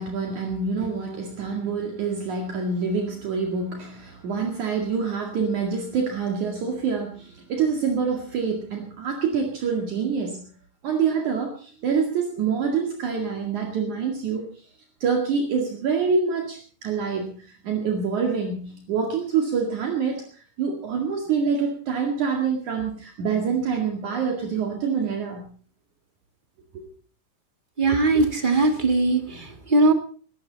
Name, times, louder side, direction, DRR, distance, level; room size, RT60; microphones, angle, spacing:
voice 1, 0.0-10.5 10.8-14.5 15.0-25.5 26.7-26.9, right 5 dB, 60° right, 2 dB, 3.4 m, -26 dB
voice 2, 27.8-29.9, right 2 dB, 20° right, 6 dB, 1.7 m, -20 dB
21.0 x 15.5 x 4.1 m, 0.41 s
omnidirectional pair, 3.9 m